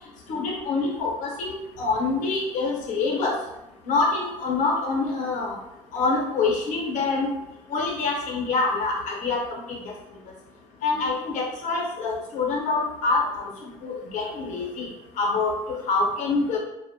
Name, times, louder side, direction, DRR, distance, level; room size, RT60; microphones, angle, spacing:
voice 1, 0.3-3.4 3.8-5.6 5.9-7.3 7.7-9.9 10.8-14.9 15.2-16.6, left 3 dB, 70° left, -1 dB, 0.7 m, -26 dB
2.4 x 2.1 x 2.7 m, 0.90 s
cardioid pair, 125°, 14 cm